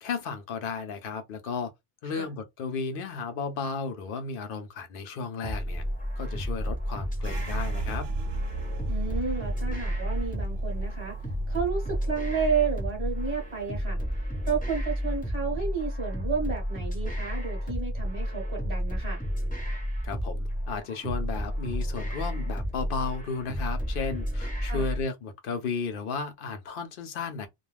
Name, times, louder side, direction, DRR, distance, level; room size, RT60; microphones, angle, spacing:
voice 1, 0.0-1.7 2.0-5.8 6.2-8.1 20.0-27.5, left 5 dB, 65° left, 0.8 m, -34 dB
sound 1, 5.4-25.0, equal, 10° left, 0.6 m, -31 dB
sound 2, 7.2-16.6 16.9-18.2 18.5-19.0 19.4-20.0, right 7 dB, 75° right, 0.8 m, -41 dB
voice 2, 8.9-11.2 11.5-14.0 14.4-19.2 24.6-24.9, right 5 dB, 30° right, 0.8 m, -32 dB
2.3 x 2.2 x 3.2 m
omnidirectional pair, 1.0 m